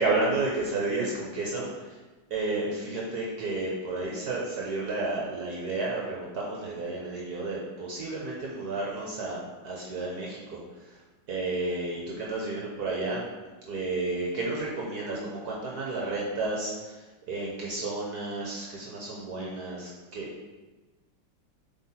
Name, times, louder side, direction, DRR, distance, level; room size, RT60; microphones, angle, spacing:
voice 1, 0.0-1.9 2.3-11.0 11.3-13.2 13.6-20.3, right 2 dB, 60° right, -3 dB, 1.4 m, -32 dB
7.9 x 3.7 x 4.3 m, 1.2 s
omnidirectional pair, 2.1 m